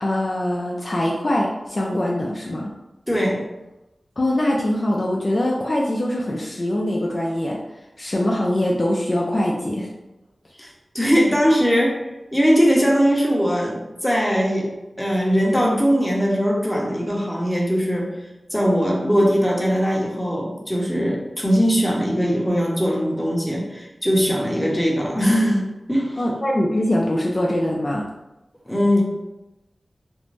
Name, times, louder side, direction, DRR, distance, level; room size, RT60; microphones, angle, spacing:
voice 1, 0.0-2.7 4.2-7.6 8.0-9.9 26.2-28.1, left 1 dB, 50° left, -3 dB, 0.4 m, -23 dB
voice 2, 3.1-3.4 10.6-10.7 10.9-12.0 12.3-14.7 15.0-18.1 18.5-26.2 28.6-29.0, equal, 10° left, -3 dB, 0.8 m, -20 dB
2.5 x 2.0 x 3.1 m, 0.98 s
cardioid pair, 40°, 0 cm